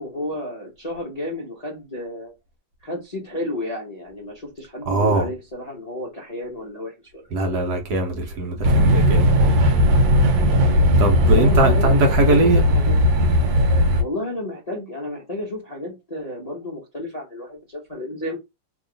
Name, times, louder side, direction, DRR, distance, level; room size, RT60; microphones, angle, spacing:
voice 1, 0.0-2.3 2.8-7.7 11.2-13.0 14.0-18.4, left 1 dB, 30° left, 0.8 m, -32 dB
voice 2, 4.9-5.3 7.3-9.3 11.0-12.6, right 2 dB, 65° right, 1.3 m, -20 dB
sound 1, 8.6-14.0, equal, 80° right, 1.4 m, -17 dB
3.0 x 2.9 x 3.8 m
omnidirectional pair, 2.1 m